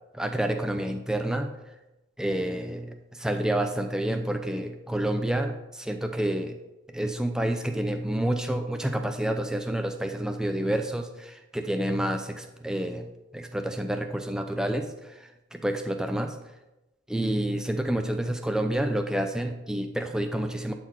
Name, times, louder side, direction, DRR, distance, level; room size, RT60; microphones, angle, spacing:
voice 1, 0.1-1.5 2.2-6.6 6.9-16.3 17.1-20.7, right 1 dB, 5° right, 5 dB, 0.5 m, -29 dB
11.5 x 4.4 x 4.9 m, 1.0 s
head